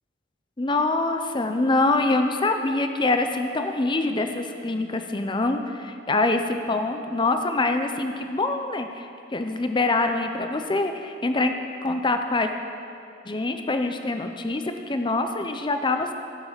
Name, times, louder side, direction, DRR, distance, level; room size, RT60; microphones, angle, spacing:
voice 1, 0.6-11.5 11.8-12.5 13.3-16.1, left 2 dB, 25° left, 6 dB, 0.6 m, -25 dB
16.0 x 7.3 x 5.2 m, 2.5 s
head